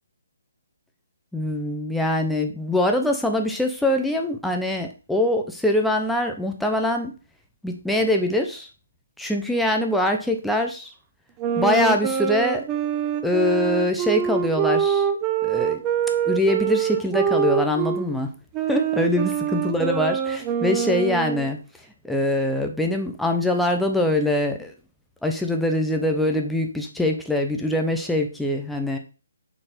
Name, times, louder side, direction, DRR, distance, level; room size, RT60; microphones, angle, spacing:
voice 1, 1.3-7.1 7.6-8.7 9.2-10.9 11.6-12.7 13.2-15.1 15.4-15.8 16.2-18.3 18.7-21.6 22.0-24.7 25.2-29.0, left 1 dB, ahead, 2 dB, 0.9 m, -23 dB
sound 1, 11.4-18.1 18.5-21.5, right 9 dB, 20° right, 0.7 m, -25 dB
6.4 x 4.4 x 4.4 m, 0.33 s
hypercardioid pair, 155°, 0 cm